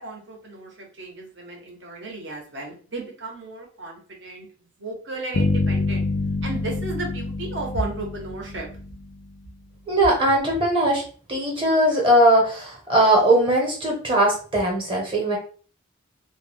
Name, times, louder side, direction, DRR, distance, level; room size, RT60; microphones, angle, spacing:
voice 1, 0.0-4.5 4.8-6.1 6.4-8.7, right 2 dB, 65° right, 0 dB, 0.8 m, -34 dB
sound 1, 5.3-9.3, left 3 dB, 55° left, 0.3 m, -26 dB
voice 2, 9.9-11.0 11.3-15.4, right 1 dB, 25° right, -1 dB, 0.8 m, -19 dB
2.2 x 2.2 x 3.3 m, 0.42 s
head